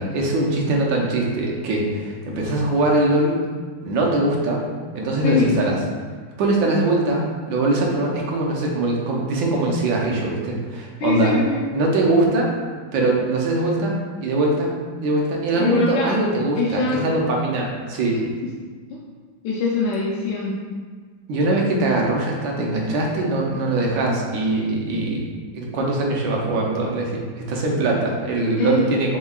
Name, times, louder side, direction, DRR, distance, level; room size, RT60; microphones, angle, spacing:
voice 1, 0.0-3.4 3.8-4.6 4.9-5.8 6.4-11.3 11.7-12.5 12.9-13.9 14.2-14.7 15.0-18.2 21.3-25.2 25.5-27.2 27.5-29.2, right 2 dB, 80° right, -1 dB, 1.5 m, -22 dB
voice 2, 5.2-5.5 11.0-11.6 15.5-16.1 16.5-17.0 18.9-19.0 19.4-20.5 28.6-28.9, left 4 dB, 80° left, -5 dB, 1.3 m, -23 dB
6.8 x 2.9 x 2.3 m, 1.5 s
omnidirectional pair, 2.1 m